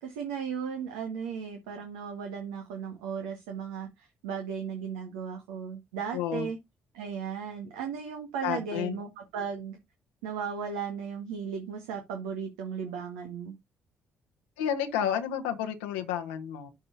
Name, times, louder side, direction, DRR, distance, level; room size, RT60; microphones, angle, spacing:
voice 1, 0.0-6.6 6.9-9.8 10.2-13.6, right 6 dB, 75° right, 1.6 m, -36 dB
voice 2, 6.1-6.5 8.4-9.0 14.6-16.7, left 9 dB, 75° left, 1.2 m, -31 dB
12.5 x 5.4 x 2.7 m
figure-of-eight pair, 45°, 5 cm